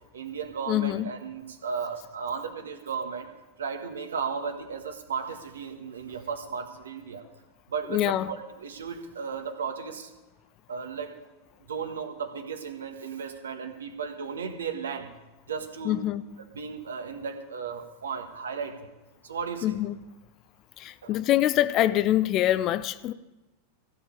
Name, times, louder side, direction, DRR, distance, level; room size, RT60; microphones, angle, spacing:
voice 1, 0.1-3.3 3.6-7.3 7.7-10.1 10.7-11.1 11.7-15.1 15.5-16.0 16.5-18.9 19.2-19.8 21.0-21.2, right 6 dB, 65° right, 1.5 m, -35 dB
voice 2, 0.7-1.1 7.9-8.3 15.8-16.2 19.6-20.0 20.8-23.1, left 13 dB, 35° left, 0.5 m, -25 dB
15.0 x 5.5 x 8.8 m
figure-of-eight pair, 90°, 0 cm